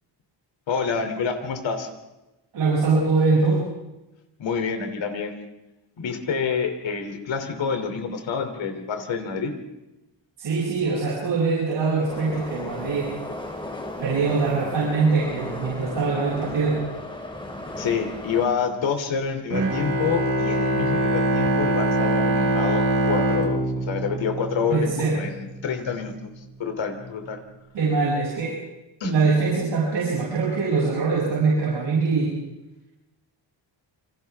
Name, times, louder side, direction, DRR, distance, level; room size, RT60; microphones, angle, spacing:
voice 1, 0.7-1.9 4.4-5.4 6.0-9.5 17.8-26.3 26.6-27.4 29.0-29.1, left 6 dB, 75° left, 5 dB, 3.3 m, -27 dB
voice 2, 2.5-3.6 10.4-13.1 14.0-16.8 24.7-25.2 27.7-28.6 29.1-32.4, right 4 dB, 70° right, -6 dB, 7.6 m, -23 dB
Subway metro underground, 12.1-18.5, left 1 dB, 10° left, 2.7 m, -35 dB
Bowed string instrument, 19.5-25.0, right 1 dB, 50° right, 3.9 m, -23 dB
29.0 x 26.5 x 3.6 m, 0.97 s
wide cardioid pair, 175°, 45 cm